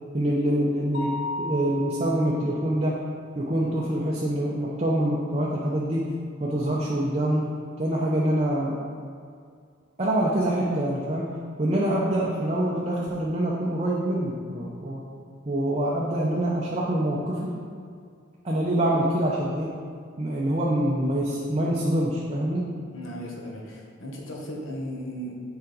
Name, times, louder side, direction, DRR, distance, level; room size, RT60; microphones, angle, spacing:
voice 1, 0.1-3.0 3.4-6.1 6.4-8.8 10.0-11.3 11.6-15.0 15.5-17.6 18.4-19.7 20.2-22.7, right 1 dB, 30° right, -4 dB, 0.6 m, -25 dB
Mallet percussion, 0.9-2.7, equal, 65° left, 0.9 m, -35 dB
voice 2, 22.9-25.3, equal, 85° left, -2 dB, 1.2 m, -36 dB
7.0 x 4.9 x 3.9 m, 2.2 s
head